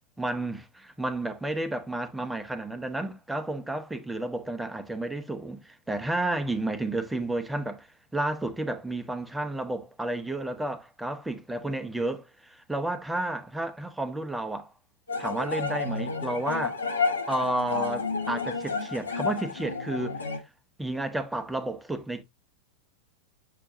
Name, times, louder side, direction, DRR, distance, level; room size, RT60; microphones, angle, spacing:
voice 1, 0.2-14.7 15.2-16.8 17.3-20.2 20.8-22.2, right 2 dB, 5° right, 1.0 m, -31 dB
sound 1, 15.1-20.4, left 4 dB, 75° left, 1.3 m, -31 dB
6.8 x 6.7 x 2.7 m
figure-of-eight pair, 90°, 0 cm